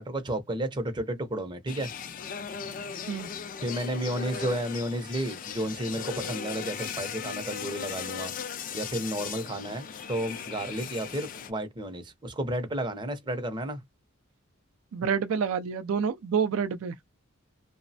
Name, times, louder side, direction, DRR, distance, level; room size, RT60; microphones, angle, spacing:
voice 1, 0.0-1.9 3.6-8.3 8.7-13.8, right 1 dB, 20° right, 0.5 m, -32 dB
sound 1, 1.7-11.5, left 7 dB, 40° left, 0.3 m, -37 dB
voice 2, 14.9-16.9, right 6 dB, 75° right, 0.3 m, -28 dB
3.0 x 2.0 x 2.6 m
head